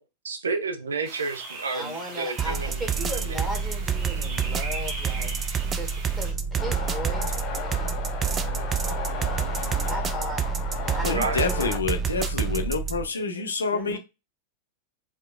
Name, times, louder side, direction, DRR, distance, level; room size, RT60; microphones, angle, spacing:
voice 1, 0.2-2.8 11.1-11.4 12.6-12.7, right 4 dB, 75° right, 0.6 m, -30 dB
sound 1, 1.0-6.3, right 3 dB, 45° right, 1.1 m, -39 dB
voice 2, 1.7-5.3 5.7-7.9 8.4-10.4 10.8-11.7 13.7-14.0, equal, 5° right, 1.9 m, -37 dB
sound 2, 2.4-13.1, right 6 dB, 25° right, 0.4 m, -28 dB
sound 3, 6.6-11.8, left 5 dB, 40° left, 1.1 m, -35 dB
voice 3, 11.0-14.0, left 4 dB, 75° left, 0.6 m, -28 dB
4.6 x 2.8 x 2.4 m
figure-of-eight pair, 95°, 0 cm